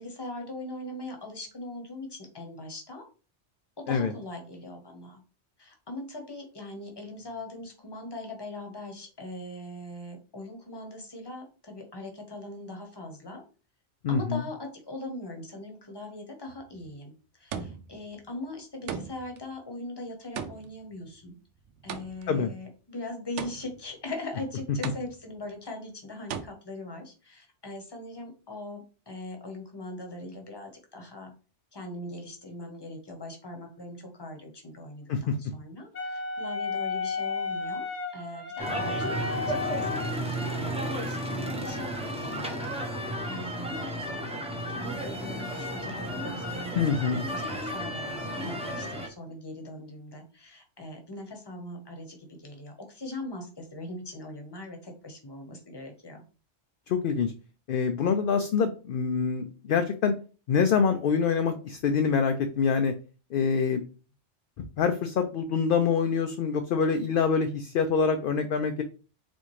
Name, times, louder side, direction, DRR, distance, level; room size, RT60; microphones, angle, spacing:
voice 1, 0.0-3.0 3.9-5.2 5.6-13.4 14.1-17.1 17.4-21.4 21.8-31.3 31.7-37.9 38.1-41.9 42.2-42.6 43.2-44.2 44.7-56.2, left 1 dB, 25° left, 3 dB, 1.0 m, -41 dB
voice 2, 14.0-14.4 22.3-22.5 35.1-35.4 46.8-47.2 56.9-57.3 57.7-60.1 60.5-62.9 63.3-63.9 64.8-68.8, left 6 dB, 60° left, 7 dB, 0.6 m, -25 dB
sound 1, 16.5-16.9 17.5-18.1 18.9-19.4 20.3-22.4 23.4-23.9 24.8-25.4 26.3-26.4, right 7 dB, 85° right, 0.9 m, -38 dB
Wind instrument woodwind instrument, 35.9-40.1, left 4 dB, 75° left, 1.5 m, -33 dB
sound 2, 38.6-49.1, equal, 5° right, 0.7 m, -33 dB
4.3 x 3.5 x 3.1 m, 0.36 s
omnidirectional pair, 1.2 m